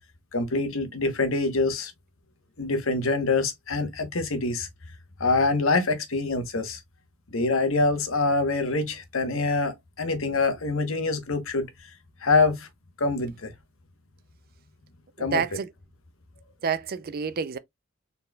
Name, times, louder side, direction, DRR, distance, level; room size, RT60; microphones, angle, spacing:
voice 1, 0.3-1.9 2.6-4.7 5.2-6.8 7.3-11.7 12.2-12.7 13.0-13.5 15.2-15.4, left 3 dB, 80° left, 1.2 m, -25 dB
voice 2, 15.2-15.7 16.6-17.6, right 6 dB, 50° right, 0.5 m, -28 dB
4.2 x 4.0 x 2.3 m
head